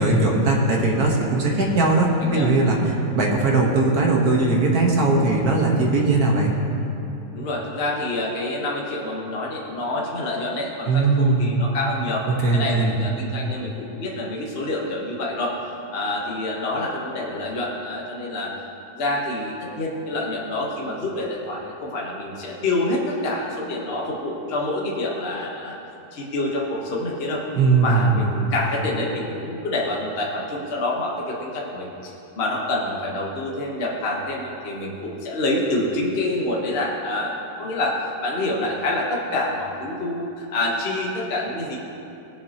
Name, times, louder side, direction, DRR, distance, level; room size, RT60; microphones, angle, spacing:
voice 1, 0.0-6.5 10.9-11.7 12.3-13.0 27.5-28.2, right 3 dB, 60° right, -1 dB, 1.7 m, -19 dB
voice 2, 2.2-2.5 7.3-12.2 12.5-15.5 15.9-18.5 18.9-25.8 26.1-27.4 27.8-31.9 32.4-37.3 37.6-41.8, left 2 dB, 40° left, -3 dB, 1.3 m, -27 dB
18.0 x 7.4 x 2.9 m, 2.8 s
omnidirectional pair, 1.9 m